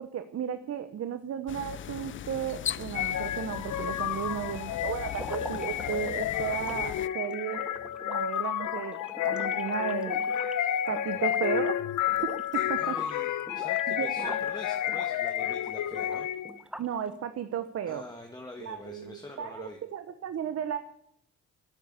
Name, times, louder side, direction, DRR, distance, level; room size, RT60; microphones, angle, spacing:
voice 1, 0.0-7.7 8.0-10.2 10.9-11.8 12.2-13.1 13.9-14.3 16.8-18.0 18.6-20.8, right 9 dB, 55° right, 10 dB, 1.1 m, -34 dB
sound 1, 1.5-7.1, left 10 dB, 40° left, 0.5 m, -39 dB
sound 2, 2.9-16.6, left 11 dB, 75° left, 1.0 m, -31 dB
sound 3, 5.1-11.8 12.1-12.6 12.9-14.5 14.9-17.1, right 1 dB, 5° right, 1.0 m, -45 dB
voice 2, 12.5-16.3 17.9-19.8, left 2 dB, 15° left, 2 dB, 2.1 m, -45 dB
11.5 x 9.4 x 9.7 m, 0.76 s
cardioid pair, 90°, 30 cm